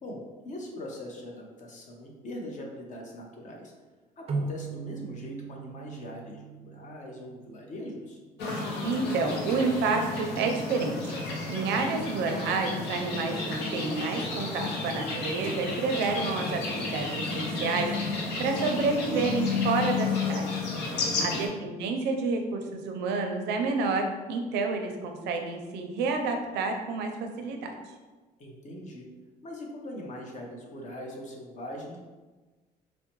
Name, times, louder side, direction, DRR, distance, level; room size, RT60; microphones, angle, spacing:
voice 1, 0.0-3.7 4.2-8.2 20.8-21.5 28.4-29.0 29.4-32.0, left 1 dB, 45° left, 0 dB, 0.8 m, -41 dB
sound 1, 4.3-7.8, right 3 dB, 40° right, 0.4 m, -38 dB
sound 2, 8.4-21.5, left 3 dB, 85° left, 0.7 m, -32 dB
voice 2, 8.8-11.1 11.5-20.6 20.9-27.8, right 4 dB, 85° right, 4 dB, 0.5 m, -29 dB
4.5 x 2.1 x 3.0 m, 1.3 s
cardioid pair, 110°, 17 cm